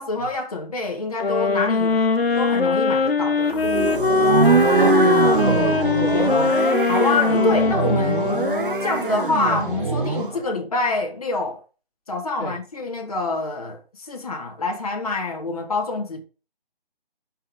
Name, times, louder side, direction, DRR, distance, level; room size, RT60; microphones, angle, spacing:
voice 1, 0.0-2.0 2.4-3.6 6.9-8.4 8.8-11.6 12.1-16.2, left 3 dB, 40° left, 1.8 m, -26 dB
sound 1, 1.2-9.2, left 4 dB, 80° left, 1.5 m, -21 dB
sound 2, 3.5-10.4, right 4 dB, 60° right, 1.3 m, -22 dB
voice 2, 4.3-6.5 12.4-12.5, left 1 dB, 10° right, 2.0 m, -30 dB
6.2 x 5.6 x 5.2 m
hypercardioid pair, 175°, 29 cm